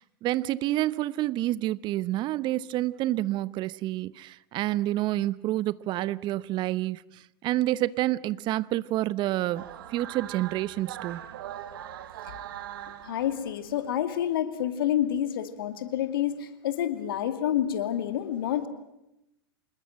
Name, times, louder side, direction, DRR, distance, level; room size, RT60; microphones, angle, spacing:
voice 1, 0.2-11.2, right 15 dB, 35° right, 0.8 m, -28 dB
sound 1, 9.5-13.9, right 11 dB, 60° right, 1.9 m, -41 dB
voice 2, 13.0-18.7, left 10 dB, 65° left, 2.5 m, -28 dB
26.5 x 21.0 x 7.6 m
hypercardioid pair, 95°, 13 cm